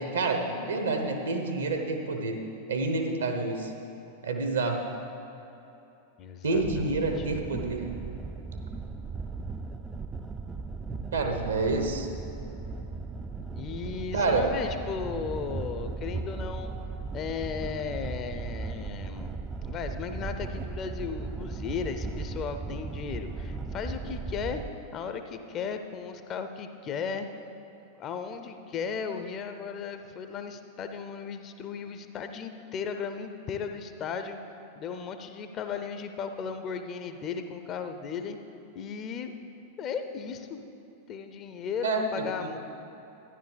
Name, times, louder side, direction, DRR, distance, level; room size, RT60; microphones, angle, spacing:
voice 1, 0.0-2.4 2.7-3.7 4.2-4.8 6.4-7.8 11.1-12.1 14.1-14.5 41.8-42.1 42.4-42.6, right 3 dB, 70° right, 3 dB, 1.0 m, -28 dB
voice 2, 6.2-7.3 13.6-16.7 17.1-19.3 19.6-24.6 24.9-27.3 28.0-34.4 34.8-38.4 38.7-39.3 39.8-40.6 41.1-42.6, left 6 dB, 30° left, 8 dB, 0.6 m, -36 dB
sound 1, 6.5-24.7, right 4 dB, 15° right, 0.4 m, -37 dB
13.0 x 10.5 x 3.4 m, 3.0 s
figure-of-eight pair, 90°, 0 cm